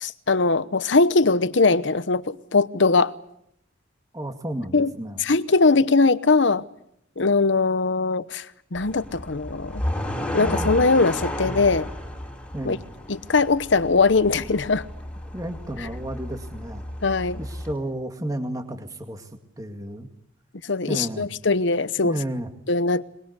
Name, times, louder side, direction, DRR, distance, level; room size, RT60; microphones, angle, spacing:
voice 1, 0.0-3.2 4.7-4.9 5.2-6.6 7.2-8.5 8.7-9.8 10.3-11.9 12.6-12.8 13.1-14.8 17.0-17.4 20.7-22.2 22.7-23.0, left 3 dB, 70° left, 0.9 m, -21 dB
voice 2, 4.1-5.2 12.5-12.8 15.3-16.8 17.4-19.3 19.6-20.1 20.9-21.3 22.0-22.5, right 1 dB, 20° right, 2.1 m, -32 dB
sound 1, 8.8-17.7, left 1 dB, 5° left, 5.3 m, -33 dB
23.0 x 22.5 x 8.2 m
head